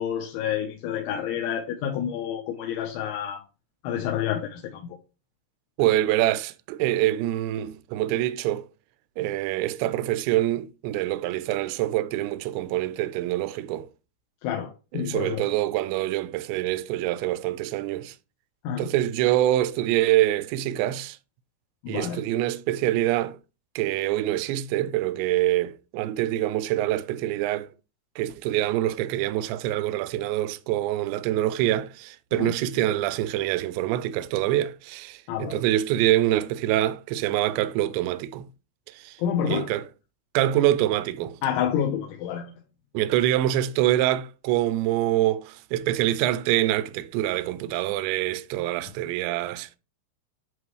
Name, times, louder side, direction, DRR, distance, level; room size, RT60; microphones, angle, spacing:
voice 1, 0.0-3.4 3.8-4.9 14.4-15.5 18.6-18.9 21.8-22.2 32.3-32.5 35.3-35.6 39.2-39.7 41.4-42.5, left 9 dB, 75° left, 3.1 m, -29 dB
voice 2, 5.8-8.7 9.2-13.9 14.9-18.2 18.8-21.2 21.9-23.4 23.8-27.7 28.2-38.5 38.9-39.2 39.5-39.9 40.3-41.4 42.9-49.8, right 14 dB, 90° right, 2.5 m, -25 dB
10.5 x 3.8 x 3.1 m
omnidirectional pair, 5.8 m